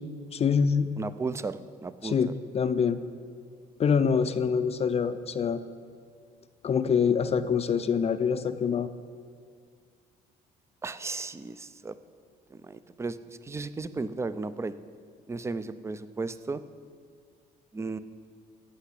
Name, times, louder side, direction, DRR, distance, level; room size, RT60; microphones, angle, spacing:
voice 1, 0.3-0.9 2.0-2.3 2.5-3.0 3.8-5.6 6.6-8.9, left 6 dB, 35° left, 11 dB, 0.6 m, -25 dB
voice 2, 1.0-2.2 10.8-11.9 12.5-13.2 13.4-14.7 15.3-16.6 17.7-18.0, right 3 dB, 15° right, 14 dB, 0.5 m, -34 dB
14.5 x 5.8 x 8.3 m, 2.1 s
cardioid pair, 110°, 17 cm